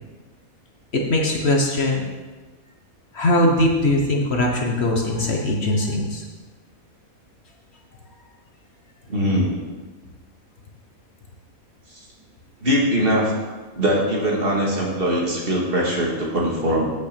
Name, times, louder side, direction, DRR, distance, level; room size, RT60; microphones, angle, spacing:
voice 1, 1.1-2.0 3.1-6.2, left 1 dB, 50° left, 1 dB, 1.3 m, -20 dB
voice 2, 9.1-9.5 12.6-13.3 13.8-16.9, equal, 40° right, -3 dB, 2.1 m, -21 dB
8.5 x 6.1 x 6.7 m, 1.3 s
omnidirectional pair, 1.5 m